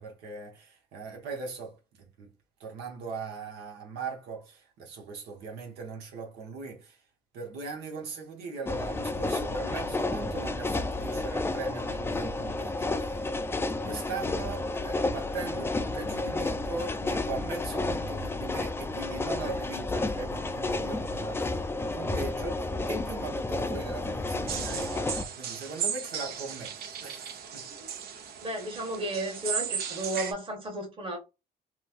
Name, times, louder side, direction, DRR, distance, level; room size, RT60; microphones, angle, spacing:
voice 1, 0.0-2.3 2.6-7.0 7.3-13.3 13.8-21.7 21.9-27.7, right 4 dB, 90° right, 0.9 m, -40 dB
sound 1, 8.6-25.2, left 2 dB, 15° left, 0.4 m, -31 dB
sound 2, 24.5-30.3, right 7 dB, 70° right, 0.6 m, -36 dB
voice 2, 28.4-31.2, right 1 dB, 30° right, 1.4 m, -34 dB
3.0 x 2.2 x 2.5 m
cardioid pair, 85°, 17 cm